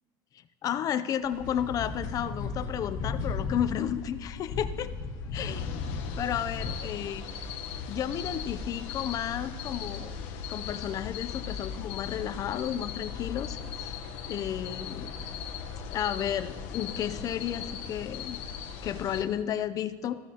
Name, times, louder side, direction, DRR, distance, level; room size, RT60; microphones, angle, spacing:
voice 1, 0.6-4.9 5.3-5.7 6.2-7.2 7.9-10.1 10.5-14.0 14.3-15.2 15.9-18.4 18.8-20.2, left 10 dB, 35° left, 12 dB, 0.5 m, -32 dB
sound 1, 1.2-7.0, left 4 dB, 80° left, 1.7 m, -35 dB
sound 2, 5.3-19.2, left 6 dB, 65° left, 1.0 m, -38 dB
14.5 x 13.5 x 2.8 m, 1.5 s
cardioid pair, 155°, 11 cm